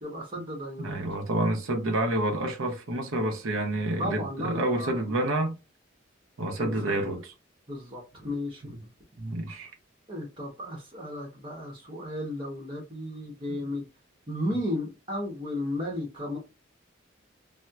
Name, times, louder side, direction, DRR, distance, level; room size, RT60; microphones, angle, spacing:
voice 1, 0.0-1.0 4.0-5.0 6.6-7.0 7.7-8.8 10.1-13.8 14.3-16.4, left 1 dB, 25° right, 0.9 m, -34 dB
voice 2, 0.8-5.6 6.4-7.3 9.2-9.7, right 1 dB, 90° right, 0.7 m, -28 dB
4.2 x 2.0 x 2.3 m
head